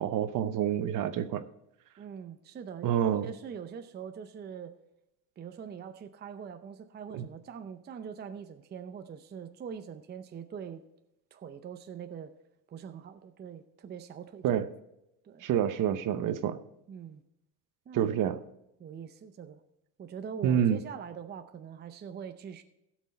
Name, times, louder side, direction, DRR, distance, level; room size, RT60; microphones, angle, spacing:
voice 1, 0.0-1.4 2.8-3.3 7.1-7.2 14.4-14.7 15.4-16.6 17.9-18.4 20.4-20.8, right 9 dB, 55° right, 0.9 m, -27 dB
voice 2, 2.0-4.7 5.4-10.8 11.3-12.3 12.7-14.4 15.2-15.4 16.9-17.2 17.9-18.1 18.8-19.6 20.0-22.6, right 7 dB, 25° right, 0.6 m, -43 dB
16.0 x 6.2 x 4.3 m
cardioid pair, 115°, 39 cm